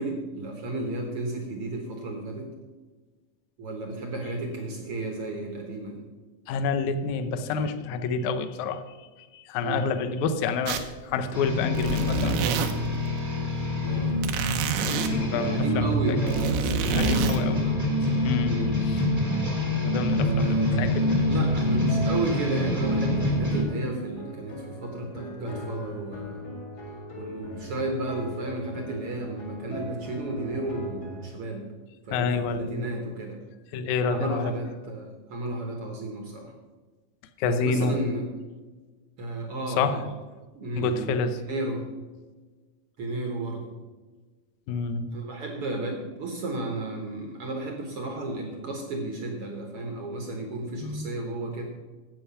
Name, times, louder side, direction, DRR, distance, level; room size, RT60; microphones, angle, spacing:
voice 1, 0.0-2.5 3.6-6.0 9.6-9.9 11.7-11.9 13.8-14.1 15.3-18.8 20.1-26.4 27.2-31.6 32.0-33.4 34.0-36.5 37.4-38.3 39.2-40.1 40.5-41.8 43.0-43.7 45.1-51.7, right 2 dB, 60° right, 3 dB, 1.6 m, -33 dB
voice 2, 6.5-12.4 15.1-16.2 16.9-17.6 18.2-18.5 18.8-19.0 19.9-21.2 32.1-32.9 33.7-34.5 37.4-38.0 39.8-40.0 40.8-41.4 44.7-45.1 50.8-51.1, left 5 dB, 75° left, 9 dB, 1.8 m, -28 dB
sound 1, 10.7-11.0 11.4-13.0 14.2-15.1 16.1-17.4, right 6 dB, 90° right, 2.9 m, -28 dB
sound 2, 11.3-23.6, left 1 dB, 15° right, 0.6 m, -26 dB
sound 3, 20.9-31.3, equal, 40° left, 1.6 m, -40 dB
11.0 x 8.4 x 5.6 m, 1.3 s
omnidirectional pair, 4.3 m